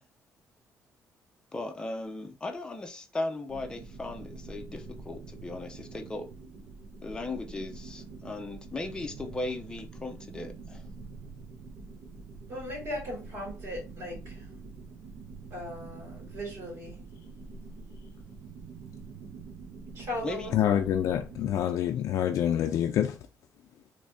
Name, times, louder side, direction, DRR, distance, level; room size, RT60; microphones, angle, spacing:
voice 1, 1.5-6.3 7.0-10.8 20.2-20.6 21.6-21.7, left 2 dB, 15° left, 0.6 m, -37 dB
sound 1, 3.5-21.6, right 4 dB, 90° right, 0.8 m, -45 dB
voice 2, 12.5-14.4 15.5-17.0 19.9-20.8, left 1 dB, 65° right, 2.2 m, -38 dB
voice 3, 20.5-23.2, left 10 dB, 65° left, 0.4 m, -26 dB
3.2 x 2.7 x 3.5 m
cardioid pair, 155°, 6 cm